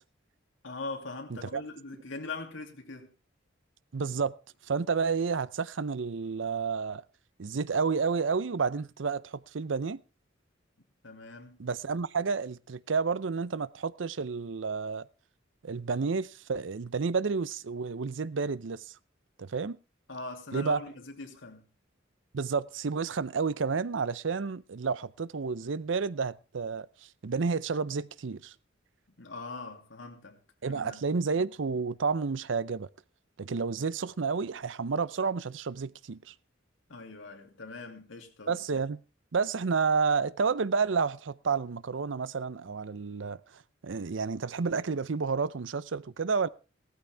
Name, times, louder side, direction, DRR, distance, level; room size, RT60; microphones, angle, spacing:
voice 1, 0.6-3.1 11.0-11.6 20.1-21.7 29.2-30.4 30.7-31.1 36.9-38.8, left 3 dB, 75° left, 2.7 m, -42 dB
voice 2, 3.9-4.3 4.7-7.0 7.4-10.0 11.6-15.1 15.6-18.9 19.4-19.8 20.5-20.8 22.3-26.9 27.2-28.5 30.6-32.9 33.4-36.3 38.5-39.0 39.3-46.5, right 5 dB, 70° right, 0.6 m, -30 dB
16.0 x 14.0 x 3.4 m
head